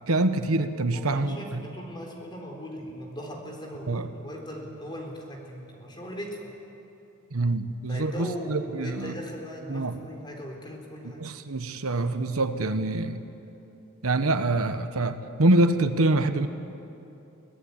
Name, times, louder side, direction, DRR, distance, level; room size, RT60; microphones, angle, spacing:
voice 1, 0.1-1.6 3.9-4.1 7.3-9.2 9.7-10.0 11.2-13.2 14.0-16.5, right 2 dB, 85° right, 9 dB, 1.2 m, -25 dB
voice 2, 0.9-6.5 7.9-11.3, equal, 20° left, 1 dB, 3.9 m, -39 dB
23.5 x 18.0 x 9.8 m, 2.8 s
head